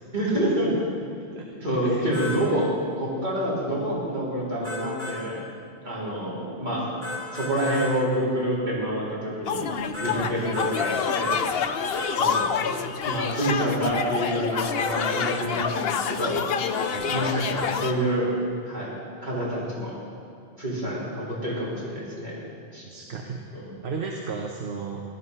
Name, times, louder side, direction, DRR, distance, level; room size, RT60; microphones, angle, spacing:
voice 1, 0.1-0.7 1.6-2.7 3.0-5.4 5.8-6.9 7.3-9.7 10.0-11.4 12.1-16.8 17.1-18.3 18.7-18.9 19.2-20.0 20.6-22.3 22.7-22.8 23.5-23.7, equal, 40° right, -7 dB, 4.3 m, -27 dB
sound 1, 2.1-2.4 4.6-5.2 7.0-7.9 9.9-10.2 10.5-11.4 11.9-12.5 14.7-15.4 16.7-17.3 17.6-17.7, left 2 dB, 30° left, 4.0 m, -33 dB
sound 2, 9.5-17.9, left 6 dB, 65° left, 0.9 m, -28 dB
voice 2, 22.8-23.4 23.8-25.0, right 5 dB, 65° right, 1 dB, 1.3 m, -34 dB
17.5 x 12.0 x 5.6 m, 2.5 s
omnidirectional pair, 1.2 m